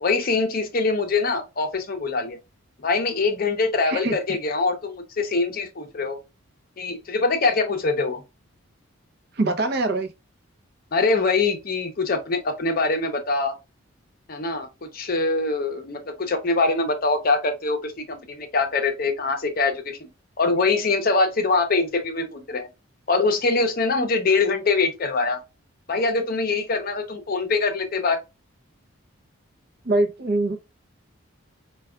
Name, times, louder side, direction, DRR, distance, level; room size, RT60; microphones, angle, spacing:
voice 1, 0.0-2.4 2.8-6.2 6.8-8.2 10.9-13.6 14.3-20.1 20.4-22.7 23.1-25.4 25.9-28.2, left 3 dB, 45° left, 0.6 m, -23 dB
voice 2, 9.4-10.1 29.9-30.6, right 2 dB, 50° right, 0.5 m, -23 dB
4.6 x 2.2 x 2.3 m
head